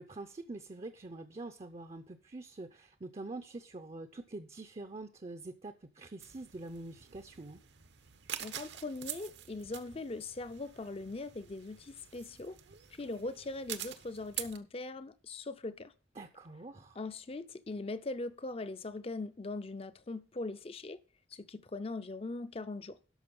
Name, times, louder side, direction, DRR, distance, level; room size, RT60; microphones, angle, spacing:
voice 1, 0.0-7.6 16.2-17.0, right 2 dB, 35° right, 0.6 m, -45 dB
sound 1, 6.2-14.6, right 10 dB, 70° right, 0.9 m, -46 dB
voice 2, 8.4-12.6 12.9-15.9 17.0-21.0 21.3-23.0, left 2 dB, 30° left, 0.5 m, -40 dB
12.0 x 6.1 x 5.4 m
head